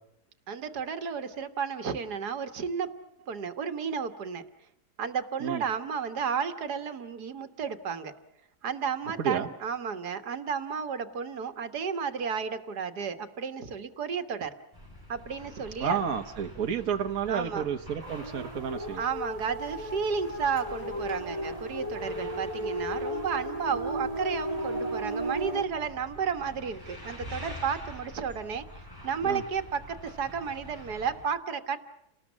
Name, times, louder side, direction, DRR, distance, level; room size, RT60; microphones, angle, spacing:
voice 1, 0.5-2.9 3.3-4.4 5.0-8.1 8.6-14.5 15.1-16.0 17.3-17.6 19.0-28.6 29.0-31.8, right 6 dB, 80° right, 10 dB, 2.0 m, -32 dB
voice 2, 9.2-9.5 15.8-19.0 29.2-29.4, right 7 dB, 65° right, 4 dB, 1.7 m, -31 dB
sound 1, 14.7-31.2, left 1 dB, 15° left, 5.8 m, -47 dB
sound 2, 18.0-25.6, right 1 dB, 25° right, 1.6 m, -35 dB
29.5 x 19.5 x 7.3 m, 0.82 s
omnidirectional pair, 1.7 m